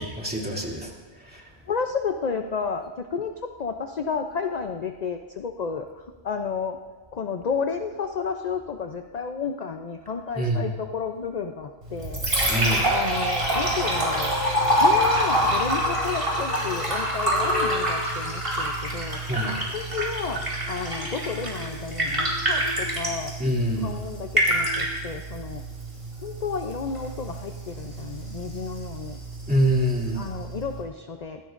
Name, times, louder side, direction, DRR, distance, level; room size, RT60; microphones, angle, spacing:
voice 1, 0.2-0.9 10.4-10.7 12.4-12.8 19.3-19.6 23.4-23.9 29.5-30.2, equal, 10° right, -3 dB, 2.6 m, -24 dB
voice 2, 1.7-6.8 7.1-12.2 12.9-14.4 14.8-19.2 19.7-23.3 23.8-25.6 26.2-29.2 30.1-31.4, left 5 dB, 45° left, 5 dB, 0.7 m, -31 dB
Liquid, 11.8-30.8, equal, 60° right, 4.6 m, -26 dB
24.5 x 16.5 x 2.6 m, 1.3 s
omnidirectional pair, 1.1 m